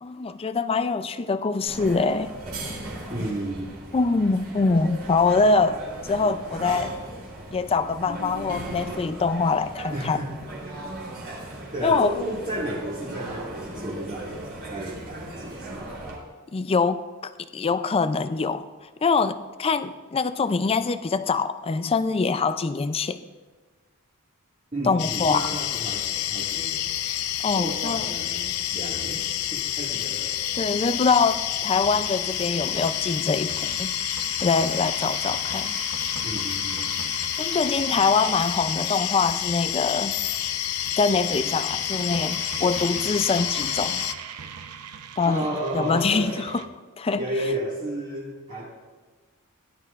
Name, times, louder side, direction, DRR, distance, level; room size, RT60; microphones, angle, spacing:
voice 1, 0.0-2.3 3.9-5.8 6.0-6.9 7.5-10.2 11.8-12.1 16.5-18.7 19.0-23.2 24.8-25.5 27.4-28.1 30.5-33.9 34.4-35.8 37.4-40.2 41.0-44.1 45.2-45.5 45.7-46.5 47.0-47.2, left 4 dB, 25° left, 12 dB, 0.4 m, -24 dB
sound 1, 1.7-16.1, right 1 dB, 65° right, 3.3 m, -37 dB
voice 2, 3.1-3.7 9.9-10.3 11.7-15.9 24.7-26.9 27.6-29.2 29.5-30.3 36.2-36.9 45.2-46.4 47.2-48.6, right 1 dB, 35° right, -8 dB, 1.9 m, -32 dB
sound 2, 25.0-44.1, left 11 dB, 80° left, 0.5 m, -29 dB
sound 3, 31.8-46.7, right 7 dB, 85° right, 0.7 m, -40 dB
17.0 x 11.0 x 2.4 m, 1.4 s
head